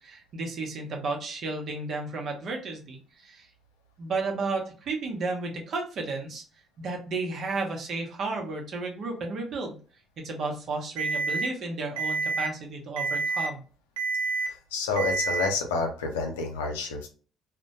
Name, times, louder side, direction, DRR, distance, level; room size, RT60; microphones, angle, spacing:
voice 1, 0.0-3.5 4.0-6.4 6.8-9.8 10.2-13.6, right 3 dB, 55° right, 1 dB, 0.7 m, -33 dB
Alarm, 11.0-11.5 12.0-12.5 13.0-13.5 14.0-14.5 15.0-15.5, right 4 dB, 90° right, 0.4 m, -28 dB
voice 2, 14.7-17.1, left 3 dB, 90° left, 3 dB, 0.5 m, -29 dB
2.1 x 2.1 x 2.8 m, 0.39 s
hypercardioid pair, 60°, 0 cm